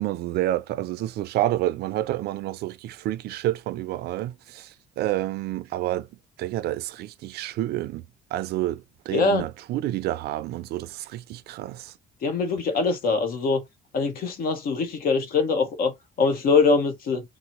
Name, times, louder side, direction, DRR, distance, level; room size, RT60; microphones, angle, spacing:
voice 1, 0.0-6.1 6.4-8.0 8.3-11.9, right 14 dB, 75° right, 0.4 m, -29 dB
voice 2, 9.1-9.4 12.2-13.6 13.9-15.9 16.2-17.2, left 4 dB, 60° left, 1.0 m, -23 dB
4.0 x 2.1 x 2.9 m
cardioid pair, 110°, 17 cm